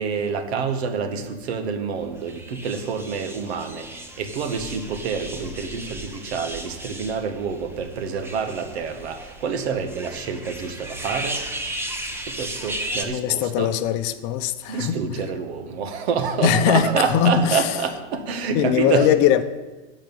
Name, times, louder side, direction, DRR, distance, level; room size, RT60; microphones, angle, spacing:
voice 1, 0.0-11.4 12.3-13.7 14.7-19.1, right 5 dB, 75° right, 1.7 m, -27 dB
sound 1, 2.2-13.0, right 1 dB, 5° right, 1.1 m, -35 dB
voice 2, 13.1-15.0 16.4-17.7 18.5-19.4, left 10 dB, 45° left, 0.8 m, -20 dB
14.0 x 5.1 x 9.0 m
supercardioid pair, 135°, 32 cm